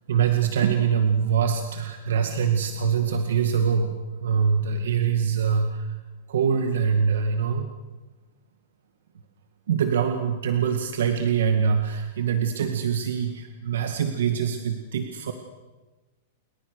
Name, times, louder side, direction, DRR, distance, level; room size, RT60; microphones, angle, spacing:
voice 1, 0.1-3.9 4.2-5.9 6.3-7.7 9.7-15.3, right 7 dB, 85° right, 6 dB, 2.1 m, -24 dB
29.0 x 23.0 x 6.7 m, 1.2 s
supercardioid pair, 150°, 0 cm